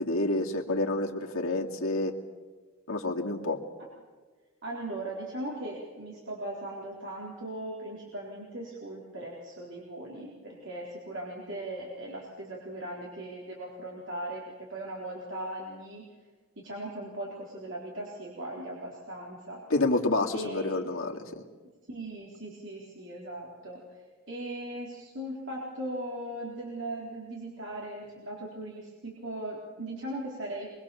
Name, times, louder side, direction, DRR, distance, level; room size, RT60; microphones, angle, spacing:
voice 1, 0.0-2.1 2.9-3.6 19.7-21.4, left 2 dB, 70° left, 1 dB, 2.5 m, -28 dB
voice 2, 4.6-16.1 16.6-19.6 20.3-20.8 21.9-30.7, right 1 dB, 55° right, -3 dB, 4.1 m, -39 dB
25.5 x 23.5 x 7.2 m, 1.4 s
head